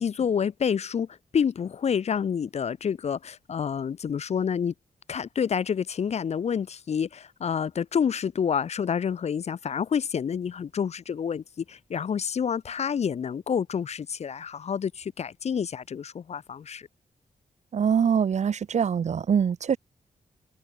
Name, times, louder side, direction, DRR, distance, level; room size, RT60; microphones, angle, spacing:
voice 1, 0.0-4.7 5.1-16.9, left 7 dB, 50° left, 0.5 m, -28 dB
voice 2, 17.7-19.8, right 7 dB, 55° right, 0.6 m, -24 dB
wide cardioid pair, 135°, 15 cm